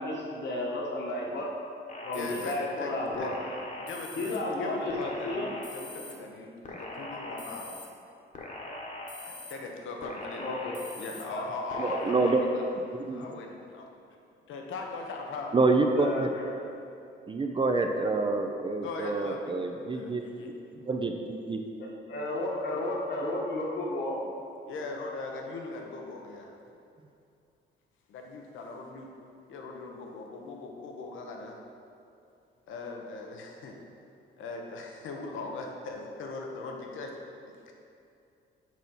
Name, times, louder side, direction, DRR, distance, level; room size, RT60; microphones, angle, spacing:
voice 1, 0.0-1.5 2.0-3.3 4.1-5.5 10.4-10.8 11.3-11.4 15.9-16.5 21.8-24.2, left 1 dB, 60° left, -2 dB, 1.5 m, -32 dB
sound 1, 1.9-2.5 3.1-4.4 4.9-6.1 6.6-7.9 8.3-9.5 10.0-11.2 11.7-12.3, left 2 dB, 40° left, 1.3 m, -41 dB
voice 2, 2.1-2.9 3.2-3.3 3.8-4.3 4.6-7.8 9.2-10.5 11.0-12.6 13.1-13.9 14.5-15.5 18.8-19.5 19.9-20.5 24.7-26.5 28.1-29.1 29.5-31.6 32.7-33.8 34.4-37.1 37.7-37.8, left 3 dB, 80° left, 1 dB, 0.9 m, -39 dB
voice 3, 11.8-12.4 12.9-13.3 15.5-16.3 17.3-21.6, right 3 dB, 25° right, 4 dB, 0.5 m, -27 dB
6.1 x 4.4 x 5.5 m, 2.6 s
cardioid pair, 90°, 20 cm